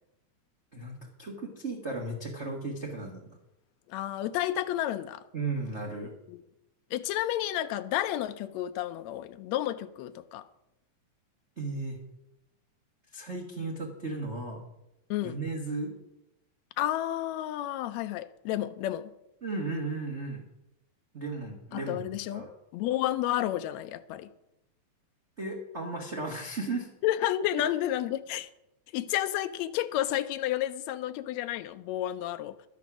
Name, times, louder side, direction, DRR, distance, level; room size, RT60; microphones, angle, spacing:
voice 1, 0.7-3.4 5.3-6.1 11.6-12.0 13.1-14.6 15.2-15.9 19.4-20.4 21.1-22.5 25.4-26.9, right 3 dB, 35° right, 1.0 m, -35 dB
voice 2, 3.9-5.2 6.3-6.4 6.9-10.4 15.1-15.4 16.8-19.1 21.7-24.3 27.0-28.5 28.9-32.5, left 13 dB, 85° left, 1.5 m, -31 dB
12.0 x 9.4 x 6.1 m
omnidirectional pair, 3.8 m